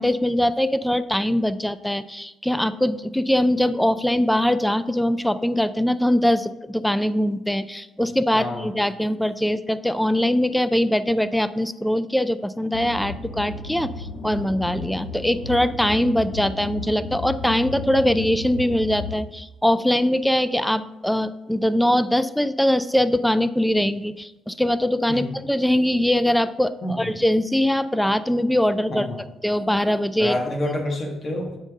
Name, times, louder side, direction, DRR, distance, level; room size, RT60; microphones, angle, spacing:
voice 1, 0.0-29.1 29.4-30.3, left 1 dB, 5° left, 14 dB, 0.3 m, -22 dB
voice 2, 8.3-8.7 25.1-25.3 26.8-27.1 28.9-29.2 30.2-31.6, left 1 dB, 45° left, 2 dB, 1.5 m, -28 dB
sound 1, 12.7-19.1, left 2 dB, 70° left, 1.1 m, -33 dB
7.4 x 5.3 x 3.6 m, 0.94 s
cardioid pair, 90°, 0 cm